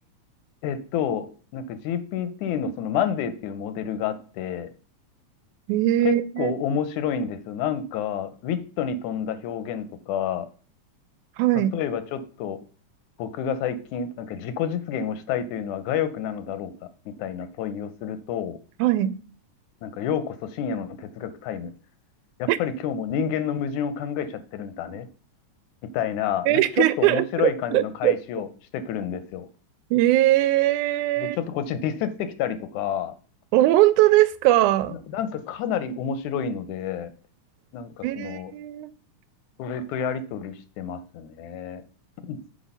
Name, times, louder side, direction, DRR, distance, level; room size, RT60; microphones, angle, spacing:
voice 1, 0.6-4.7 6.0-10.5 11.7-12.6 13.2-16.7 17.1-18.6 19.8-21.7 22.4-25.1 25.9-28.5 28.7-29.5 31.2-33.1 34.9-37.1 37.7-38.5 39.6-41.8 42.2-42.4, left 8 dB, 85° left, 2.1 m, -29 dB
voice 2, 5.7-6.6 11.4-11.7 18.8-19.2 22.5-22.6 26.5-28.2 29.9-31.4 33.5-35.0 38.0-38.9, right 15 dB, 90° right, 2.1 m, -20 dB
7.1 x 4.6 x 5.4 m
omnidirectional pair, 3.4 m